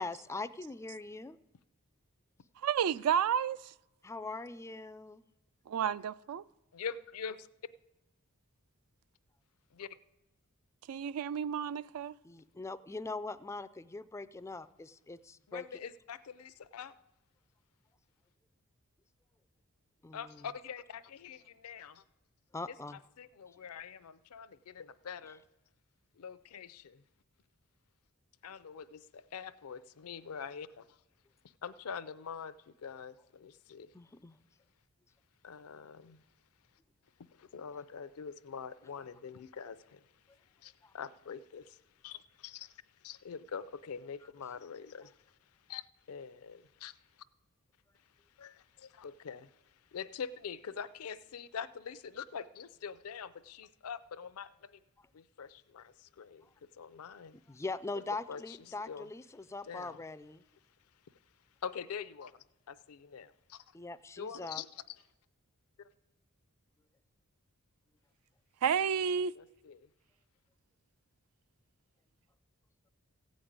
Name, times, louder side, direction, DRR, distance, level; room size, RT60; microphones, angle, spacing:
voice 1, 0.0-1.4 4.0-5.2 12.2-15.6 20.0-20.5 22.5-23.0 33.9-34.4 40.8-40.9 57.5-60.4 63.7-64.6, left 3 dB, 15° left, 0.3 m, -42 dB
voice 2, 2.6-3.7 5.7-6.4 10.9-12.1 68.6-69.3, right 8 dB, 70° right, 0.3 m, -31 dB
voice 3, 6.7-7.5 9.7-9.9 15.5-17.0 20.1-22.0 23.2-25.4 26.2-27.0 28.4-30.8 31.6-33.9 35.4-36.2 37.4-40.0 40.6-42.7 43.0-45.2 45.7-47.0 48.4-49.5 49.9-54.8 55.1-56.5 56.8-57.4 58.3-58.6 58.9-59.1 59.7-60.0 61.6-62.3 62.7-63.7 64.2-65.0 69.3-69.9, left 6 dB, 75° left, 0.5 m, -44 dB
15.0 x 5.2 x 8.6 m
head